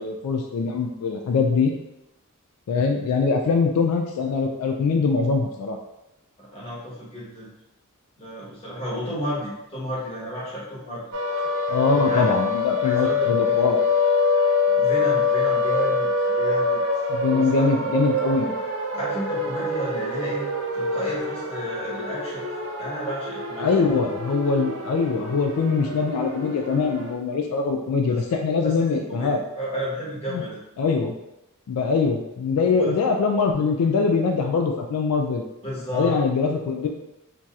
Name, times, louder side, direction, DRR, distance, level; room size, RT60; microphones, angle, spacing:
voice 1, 0.0-1.7 2.7-5.8 11.7-13.8 17.1-18.5 23.6-29.4 30.3-30.4 30.8-31.1 31.7-35.4 35.9-36.9, left 4 dB, 85° left, 2 dB, 0.3 m, -23 dB
voice 2, 6.4-7.5 8.2-11.0 12.0-12.2 12.8-13.7 14.7-16.8 17.3-17.5 17.8-17.9 18.9-20.5 20.7-22.4 22.8-23.9 28.1-28.2 28.6-30.6 32.7-32.9 35.6-36.2, equal, 25° left, -7 dB, 1.1 m, -32 dB
sound 1, 11.1-27.1, left 3 dB, 65° right, 0.4 m, -25 dB
3.0 x 2.7 x 2.3 m, 0.92 s
head